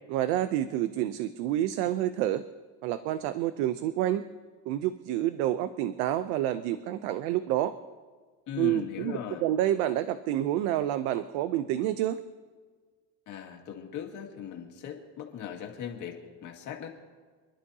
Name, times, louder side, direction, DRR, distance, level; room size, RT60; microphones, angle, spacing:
voice 1, 0.1-2.4 2.8-4.2 4.7-7.7 8.6-12.2, right 12 dB, 90° right, 11 dB, 0.7 m, -28 dB
voice 2, 8.5-9.5 13.3-16.9, left 9 dB, 45° left, 1 dB, 2.1 m, -39 dB
28.0 x 11.5 x 2.8 m, 1.5 s
cardioid pair, 155°, 41 cm